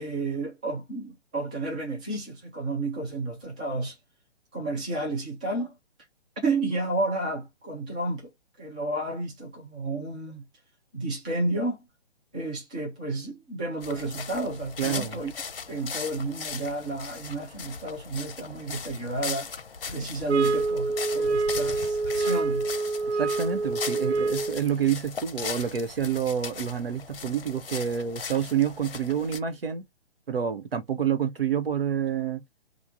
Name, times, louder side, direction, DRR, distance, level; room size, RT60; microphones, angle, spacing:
voice 1, 0.0-4.0 4.5-5.8 6.4-8.3 8.6-10.4 10.9-11.9 12.3-15.3 15.7-19.5 19.9-22.7, right 2 dB, 5° right, 0.5 m, -31 dB
sound 1, 13.8-29.4, left 5 dB, 60° left, 0.7 m, -38 dB
voice 2, 14.8-15.2 23.1-29.8 30.3-32.4, right 8 dB, 60° right, 1.1 m, -28 dB
sound 2, 20.3-24.6, right 3 dB, 85° right, 0.5 m, -26 dB
3.5 x 2.4 x 4.2 m
figure-of-eight pair, 135°, 32 cm